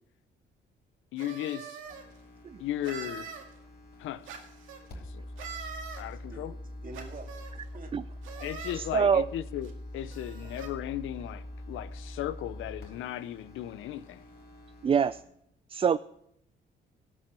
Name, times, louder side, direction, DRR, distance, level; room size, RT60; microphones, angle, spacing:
voice 1, 1.1-1.8 2.6-3.3 4.0-4.2 5.1-5.2 6.0-6.5 8.4-14.2, left 12 dB, 85° left, 0.7 m, -36 dB
sound 1, 1.2-2.0 2.8-3.4 4.3-4.8 5.4-6.0 6.9-7.5 8.2-8.8 9.6-9.7 10.1-10.7, right 6 dB, 90° right, 2.0 m, -43 dB
sound 2, 1.8-15.2, left 1 dB, 55° left, 4.3 m, -44 dB
voice 2, 6.1-8.2 10.4-10.5, right 3 dB, 45° right, 2.4 m, -48 dB
voice 3, 8.7-9.3 14.8-15.2 15.7-16.0, right 7 dB, 30° right, 0.3 m, -25 dB
17.5 x 6.2 x 6.0 m
cardioid pair, 90°, 20 cm